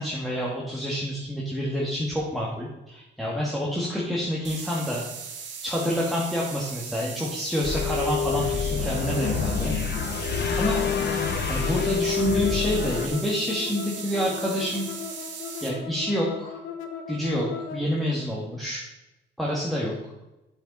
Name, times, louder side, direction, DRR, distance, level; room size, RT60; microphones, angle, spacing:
voice 1, 0.0-5.0 5.6-9.7 10.6-10.8 11.5-14.9 15.6-16.6 17.1-18.8 19.4-19.9, equal, ahead, -5 dB, 2.2 m, -28 dB
sound 1, 4.4-15.7, right 6 dB, 65° right, 2.0 m, -38 dB
sound 2, 7.6-13.1, left 6 dB, 60° left, 1.3 m, -27 dB
sound 3, 9.6-17.9, left 6 dB, 80° left, 1.1 m, -38 dB
8.4 x 7.8 x 4.3 m, 0.99 s
cardioid pair, 90°, 20 cm